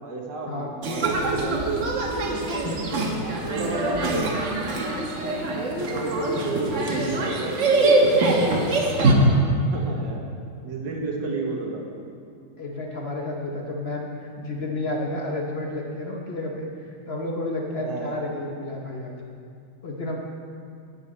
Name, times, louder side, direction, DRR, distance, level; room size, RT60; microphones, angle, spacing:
voice 1, 0.0-2.7 3.5-3.9 5.1-8.1 9.7-10.2 10.6-11.8 17.8-18.2, right 4 dB, 90° right, 0 dB, 1.9 m, -32 dB
sound 1, 0.8-9.1, right 2 dB, 50° right, 1.2 m, -23 dB
voice 2, 3.6-4.1 9.1-9.6 12.6-19.1 19.8-20.1, left 2 dB, 45° left, 0 dB, 0.9 m, -31 dB
11.0 x 8.5 x 4.2 m, 2.3 s
omnidirectional pair, 1.9 m